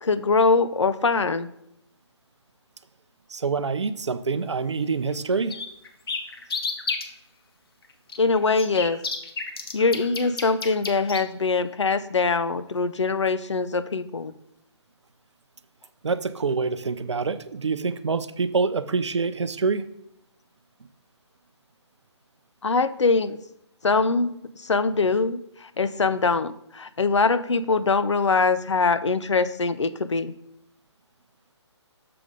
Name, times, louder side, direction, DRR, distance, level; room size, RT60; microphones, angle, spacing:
voice 1, 0.0-1.5 8.2-9.0 9.7-14.3 22.6-23.4 23.8-24.3 24.6-30.3, left 4 dB, 80° left, 13 dB, 0.5 m, -23 dB
voice 2, 3.3-5.6 16.0-19.8, right 4 dB, 75° right, 13 dB, 0.5 m, -26 dB
sound 1, 5.1-5.2 5.5-7.0 8.1-11.2, left 4 dB, 55° left, 0.9 m, -31 dB
6.8 x 3.5 x 5.0 m, 0.79 s
figure-of-eight pair, 140°, 15 cm